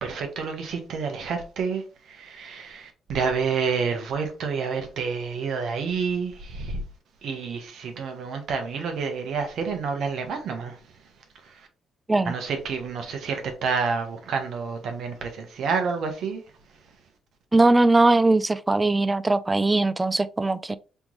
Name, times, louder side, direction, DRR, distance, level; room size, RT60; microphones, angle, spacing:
voice 1, 0.0-6.8 7.2-10.8 11.4-11.7 12.3-16.4, right 5 dB, 70° right, 1.1 m, -29 dB
voice 2, 17.5-20.8, right 2 dB, 15° right, 0.4 m, -20 dB
3.5 x 3.0 x 3.9 m
cardioid pair, 90°, 0 cm